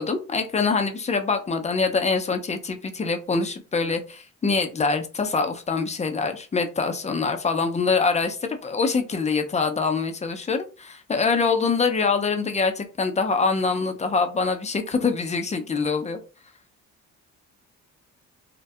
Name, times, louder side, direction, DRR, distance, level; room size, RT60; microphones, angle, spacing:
voice 1, 0.0-16.2, left 4 dB, 25° left, 6 dB, 0.4 m, -24 dB
2.2 x 2.1 x 2.6 m, 0.33 s
cardioid pair, 90°, 30 cm